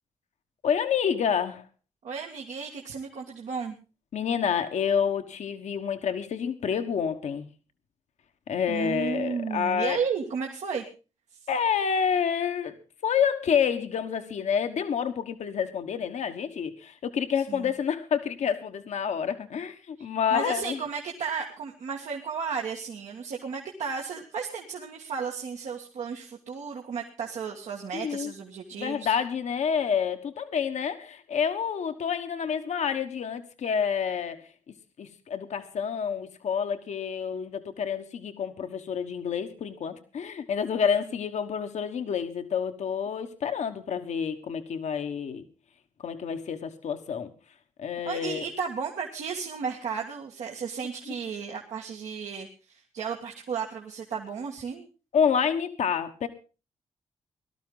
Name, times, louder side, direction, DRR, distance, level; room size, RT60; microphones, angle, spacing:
voice 1, 0.6-1.6 4.1-7.5 8.5-10.0 11.5-12.7 13.0-20.8 27.9-28.3 28.7-34.5 35.0-45.4 46.0-47.3 47.8-48.5 55.1-56.3, left 7 dB, 75° left, 7 dB, 1.3 m, -28 dB
voice 2, 2.0-3.8 8.7-10.8 17.5-17.7 20.0-29.1 48.1-54.9, right 6 dB, 85° right, -1 dB, 1.9 m, -34 dB
18.5 x 12.5 x 3.9 m, 0.33 s
cardioid pair, 70°, 12 cm